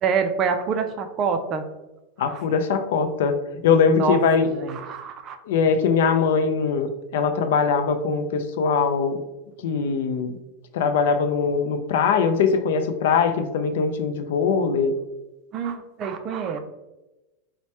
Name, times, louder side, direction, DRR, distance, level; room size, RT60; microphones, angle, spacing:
voice 1, 0.0-1.6 2.3-2.4 3.9-4.2 4.5-5.4 15.5-16.6, right 6 dB, 30° right, 7 dB, 0.3 m, -26 dB
voice 2, 2.2-3.4 3.6-4.5 5.5-9.2 9.6-10.4 10.7-14.9, left 5 dB, 75° left, 8 dB, 0.4 m, -21 dB
4.5 x 2.1 x 2.8 m, 1.0 s
supercardioid pair, 150°, 0 cm